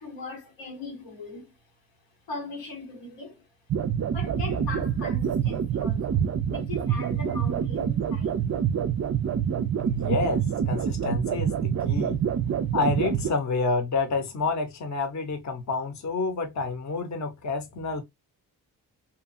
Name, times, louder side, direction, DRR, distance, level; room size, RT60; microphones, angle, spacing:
voice 1, 0.0-1.5 2.3-3.4 4.1-8.5, left 3 dB, 85° left, 1.4 m, -39 dB
sound 1, 3.7-13.3, right 8 dB, 40° right, 0.5 m, -26 dB
voice 2, 9.8-12.2 12.7-18.0, left 3 dB, 40° left, 0.8 m, -28 dB
2.8 x 2.3 x 2.6 m
supercardioid pair, 50°, 42 cm